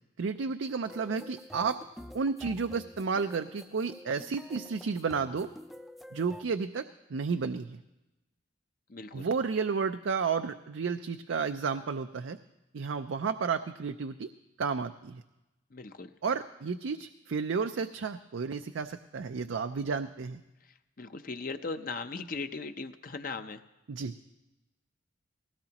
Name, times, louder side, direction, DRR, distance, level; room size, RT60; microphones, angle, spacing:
voice 1, 0.2-1.8 2.1-5.5 6.1-7.8 9.1-12.4 12.7-14.3 14.6-15.2 16.2-20.4 23.9-24.1, right 5 dB, 85° right, 8 dB, 0.5 m, -32 dB
sound 1, 0.8-6.4, equal, ahead, 0.4 m, -48 dB
voice 2, 8.9-9.3 15.7-16.1 20.6-23.6, left 4 dB, 45° left, 8 dB, 0.7 m, -38 dB
19.5 x 17.0 x 2.9 m, 0.99 s
head